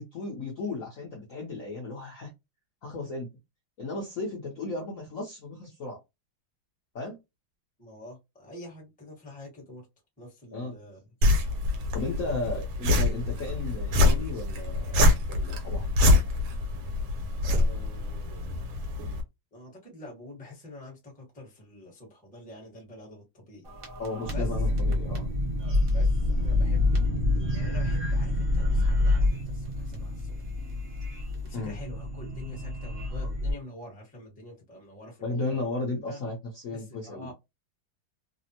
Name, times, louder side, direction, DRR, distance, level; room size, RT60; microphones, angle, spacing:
voice 1, 0.0-2.3 2.8-3.3 3.8-6.0 6.9-7.2 10.5-10.8 11.9-15.9 24.0-25.3 31.5-31.8 35.2-37.3, left 2 dB, 60° left, 0.9 m, -35 dB
voice 2, 7.8-9.8 10.2-11.0 11.4-11.5 12.3-12.4 17.4-18.7 19.5-23.9 24.3-24.5 25.6-30.5 31.4-35.6 36.1-36.2 36.7-37.3, left 1 dB, 5° left, 0.7 m, -46 dB
sound 1, 11.2-19.2, left 2 dB, 80° right, 1.5 m, -25 dB
sound 2, 23.7-33.5, left 2 dB, 40° right, 0.8 m, -27 dB
3.3 x 2.0 x 2.8 m
omnidirectional pair, 2.2 m